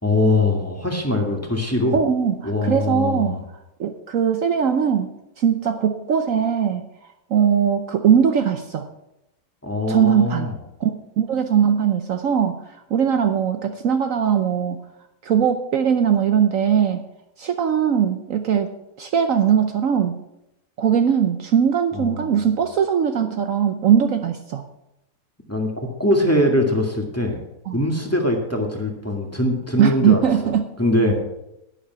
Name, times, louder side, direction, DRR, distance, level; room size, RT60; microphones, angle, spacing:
voice 1, 0.0-2.0 2.5-3.4 9.6-10.5 21.9-22.5 25.5-25.7 26.0-27.4 27.7-30.2 30.8-31.2, left 1 dB, 10° left, 1 dB, 1.8 m, -22 dB
voice 2, 1.9-3.4 3.8-6.8 7.3-8.9 9.9-10.5 10.8-12.6 12.9-14.8 15.2-17.0 17.4-20.2 20.8-24.7 27.7-27.8 29.8-30.7, right 8 dB, 65° right, 7 dB, 1.1 m, -20 dB
11.0 x 10.0 x 5.7 m, 0.87 s
omnidirectional pair, 1.6 m